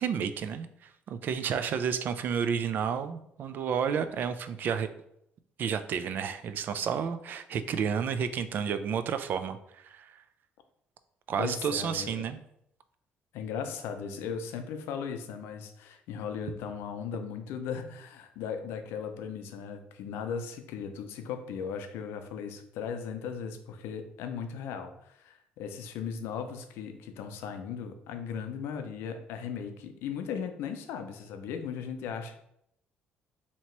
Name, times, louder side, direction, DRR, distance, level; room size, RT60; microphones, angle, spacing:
voice 1, 0.0-4.9 5.6-10.2 11.3-12.4, right 7 dB, 55° right, 11 dB, 0.3 m, -31 dB
voice 2, 11.4-12.2 13.3-32.4, left 6 dB, 90° left, 7 dB, 0.5 m, -37 dB
2.9 x 2.8 x 4.4 m, 0.74 s
cardioid pair, 120°, 4 cm